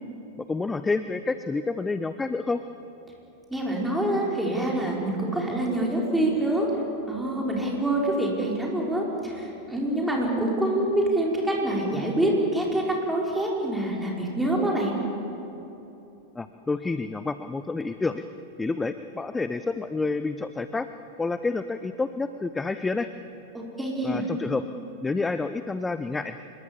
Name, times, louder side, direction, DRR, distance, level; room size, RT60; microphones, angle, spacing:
voice 1, 0.5-2.6 16.4-18.2 18.6-20.9 21.2-23.1 24.0-24.6 25.0-26.4, left 3 dB, 10° left, 11 dB, 0.7 m, -29 dB
voice 2, 3.5-6.7 7.1-15.0 23.5-24.3, right 1 dB, 5° right, -3 dB, 5.4 m, -26 dB
26.0 x 22.0 x 7.1 m, 3.0 s
figure-of-eight pair, 90°, 0 cm